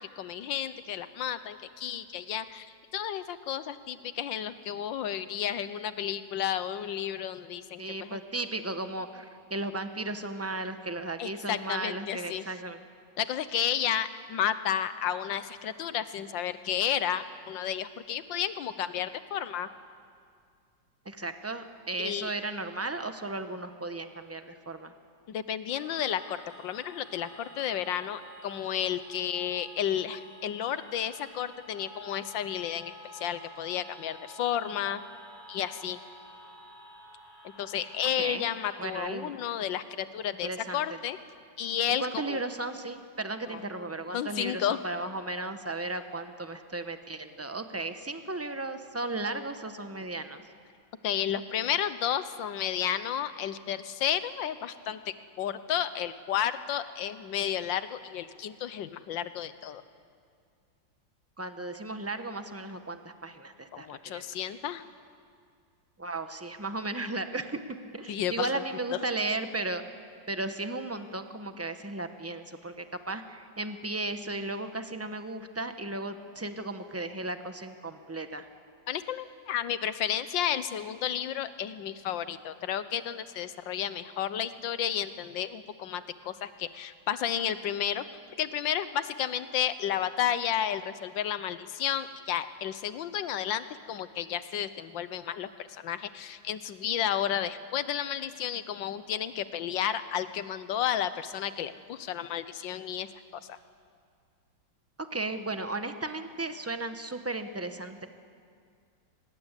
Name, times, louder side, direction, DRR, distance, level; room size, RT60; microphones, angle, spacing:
voice 1, 0.0-8.2 11.2-12.5 13.2-19.7 22.0-22.3 25.3-26.4 26.6-35.0 35.5-36.0 37.6-41.2 41.6-42.4 43.5-43.6 44.1-44.8 51.0-59.8 63.7-64.8 68.1-68.6 68.9-69.0 78.9-88.1 88.4-103.2 103.5-103.6, left 10 dB, 90° left, 13 dB, 1.6 m, -32 dB
voice 2, 7.8-12.8 21.0-24.9 38.2-38.5 38.8-39.4 40.4-41.0 42.0-50.4 61.4-64.3 66.0-69.8 70.3-78.5 105.0-108.1, right 2 dB, 10° right, 8 dB, 0.8 m, -35 dB
sound 1, 25.7-38.9, equal, 75° left, 8.4 m, -51 dB
25.0 x 21.0 x 8.3 m, 2.2 s
omnidirectional pair, 2.0 m